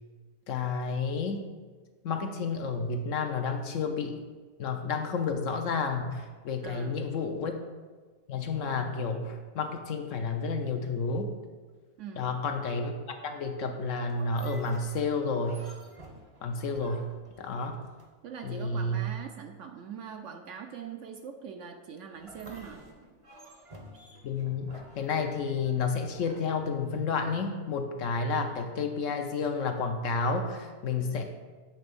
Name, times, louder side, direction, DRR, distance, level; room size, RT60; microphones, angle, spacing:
voice 1, 0.5-1.4 2.0-4.2 4.6-7.6 8.3-11.4 12.2-15.6 16.4-17.1 17.4-17.8 18.4-19.1 24.2-31.2, left 4 dB, 70° left, 5 dB, 0.9 m, -31 dB
voice 2, 6.6-7.0 12.0-12.3 18.2-22.8, right 7 dB, 65° right, 5 dB, 0.8 m, -42 dB
sound 1, 14.1-18.4 22.1-27.2, right 1 dB, 30° right, 0.6 m, -51 dB
8.7 x 3.4 x 5.2 m, 1.4 s
omnidirectional pair, 1.6 m